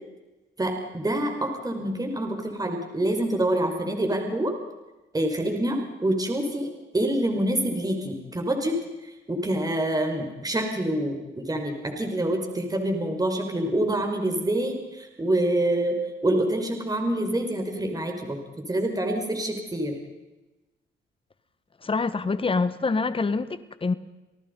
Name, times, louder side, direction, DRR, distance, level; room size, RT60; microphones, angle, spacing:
voice 1, 0.6-4.5 5.1-6.7 6.9-8.8 9.3-18.4 18.7-20.0, right 1 dB, 20° right, 4 dB, 5.4 m, -26 dB
voice 2, 21.8-23.9, left 4 dB, 25° left, 13 dB, 1.5 m, -26 dB
29.5 x 18.5 x 5.5 m, 1.1 s
cardioid pair, 90°, 20 cm